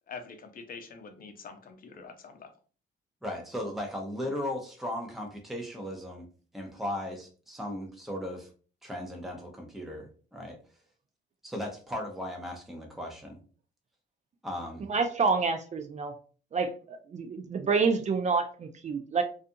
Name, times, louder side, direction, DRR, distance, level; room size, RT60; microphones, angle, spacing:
voice 1, 0.1-2.5, left 5 dB, 45° left, 6 dB, 0.6 m, -45 dB
voice 2, 3.2-6.3 6.5-8.5 8.8-10.6 11.4-13.4 14.4-14.9, left 1 dB, ahead, 1 dB, 0.7 m, -37 dB
voice 3, 14.8-16.1 16.5-19.2, right 4 dB, 35° right, 7 dB, 0.4 m, -28 dB
2.5 x 2.4 x 2.6 m, 0.39 s
cardioid pair, 90°, 20 cm